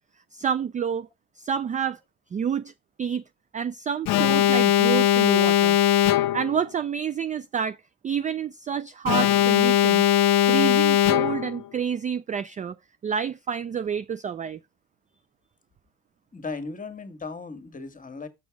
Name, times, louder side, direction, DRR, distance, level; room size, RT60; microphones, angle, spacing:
voice 1, 0.3-1.1 1.4-2.0 2.3-2.7 3.0-3.2 3.5-5.8 6.3-7.8 8.0-10.1 10.5-12.8 13.0-14.6, right 7 dB, 20° right, 0.3 m, -28 dB
Alarm, 4.1-6.6 9.1-11.6, left 13 dB, 60° left, 0.7 m, -20 dB
voice 2, 16.3-18.3, left 4 dB, 20° left, 1.5 m, -36 dB
6.2 x 6.0 x 4.6 m
supercardioid pair, 95°, 38 cm